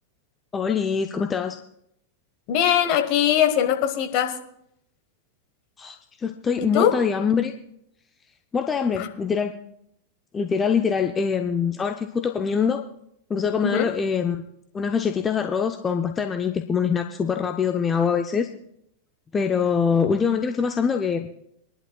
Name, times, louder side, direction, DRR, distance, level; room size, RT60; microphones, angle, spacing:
voice 1, 0.5-1.6 5.8-7.5 8.5-9.5 10.3-12.8 13.3-14.4 14.7-18.5 19.3-21.3, left 6 dB, 20° left, 6 dB, 0.6 m, -24 dB
voice 2, 2.5-4.3 6.6-6.9 9.0-9.1 13.6-13.9, left 9 dB, 45° left, 8 dB, 1.3 m, -21 dB
23.5 x 11.0 x 2.3 m, 0.75 s
figure-of-eight pair, 90°, 0 cm